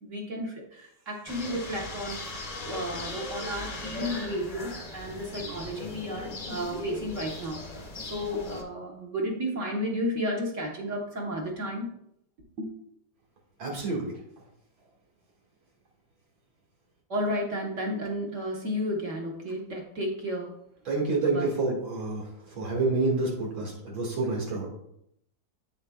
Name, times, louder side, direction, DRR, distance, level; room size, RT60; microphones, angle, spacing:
voice 1, 0.0-11.9 12.6-12.7 17.1-20.5 21.2-21.5, equal, 45° right, 0 dB, 1.3 m, -33 dB
Greenwich Inn Patio, 1.3-8.6, left 2 dB, 45° left, 0.5 m, -38 dB
voice 2, 13.6-14.1 20.9-22.3 22.6-24.7, right 3 dB, 90° right, -2 dB, 2.7 m, -28 dB
8.3 x 7.0 x 2.3 m, 0.75 s
omnidirectional pair, 2.1 m